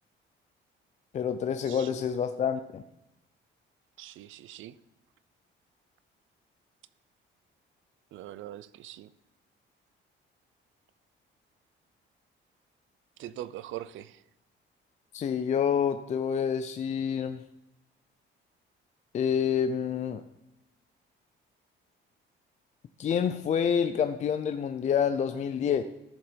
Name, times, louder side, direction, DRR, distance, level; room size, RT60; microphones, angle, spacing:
voice 1, 1.1-2.8 15.1-17.4 19.1-20.2 23.0-25.8, left 7 dB, 35° left, 0.5 m, -28 dB
voice 2, 4.0-4.7 8.1-9.1 13.2-14.2, right 13 dB, 75° right, 0.6 m, -42 dB
14.5 x 7.2 x 5.1 m
cardioid pair, 170°, 21 cm